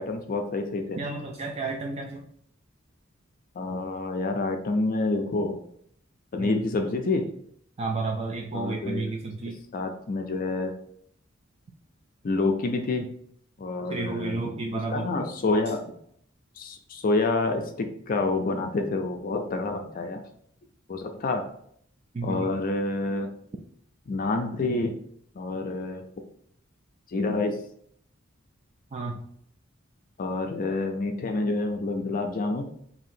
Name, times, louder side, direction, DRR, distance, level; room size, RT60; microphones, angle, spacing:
voice 1, 0.0-1.0 3.6-5.6 6.3-7.2 8.5-9.0 9.7-10.7 12.2-13.1 13.6-14.4 14.9-15.8 16.6-20.2 20.9-21.4 22.2-23.3 24.1-25.0 25.4-26.0 27.1-27.6 30.2-32.6, left 3 dB, 45° left, 5 dB, 0.4 m, -28 dB
voice 2, 1.0-2.2 6.4-6.6 7.8-9.6 13.9-15.1 22.1-22.5 28.9-29.2, right 3 dB, 30° right, 1 dB, 0.4 m, -31 dB
2.8 x 2.7 x 4.2 m, 0.66 s
head